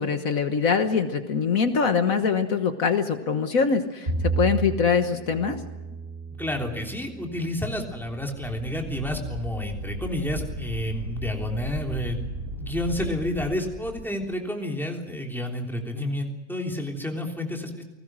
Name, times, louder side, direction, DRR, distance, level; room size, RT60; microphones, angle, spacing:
voice 1, 0.0-5.6, left 6 dB, 65° left, 7 dB, 1.7 m, -23 dB
Bowed string instrument, 4.1-10.4, right 4 dB, 40° right, 6.6 m, -34 dB
voice 2, 6.4-12.2 12.6-17.8, left 1 dB, ahead, 1 dB, 3.3 m, -30 dB
Wind, 7.7-14.0, right 1 dB, 70° right, 6.6 m, -36 dB
29.0 x 20.0 x 6.3 m, 1.1 s
omnidirectional pair, 1.6 m